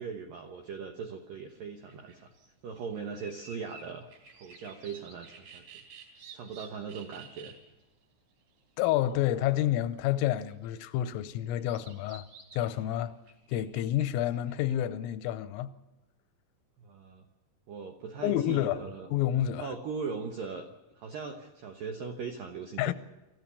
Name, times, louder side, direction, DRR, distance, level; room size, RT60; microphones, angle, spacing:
voice 1, 0.0-2.3 2.6-4.1 4.4-5.8 6.3-7.6 16.8-17.2 17.7-19.1 19.6-20.7 21.0-22.9, right 5 dB, 75° right, 2.0 m, -39 dB
sound 1, 1.5-1.6 1.9-2.5 2.8-7.8 8.3-9.5 10.1-14.7, right 4 dB, 60° right, 5.9 m, -52 dB
voice 2, 8.8-12.3 12.5-13.2 13.5-15.7 18.2-18.8 19.1-19.7 22.8-22.9, left 12 dB, 85° left, 3.4 m, -29 dB
25.5 x 14.5 x 6.9 m
omnidirectional pair, 5.9 m